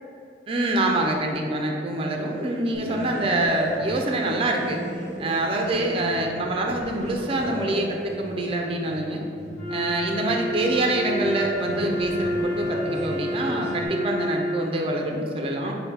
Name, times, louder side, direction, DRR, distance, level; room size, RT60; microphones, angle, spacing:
voice 1, 0.5-4.8 5.2-9.2 9.7-15.7, right 2 dB, 30° right, 2 dB, 0.4 m, -25 dB
sound 1, 2.7-13.9, equal, 40° left, 1.1 m, -36 dB
Wind instrument woodwind instrument, 9.5-14.7, equal, 10° left, 0.8 m, -29 dB
5.4 x 2.2 x 4.2 m, 2.4 s
head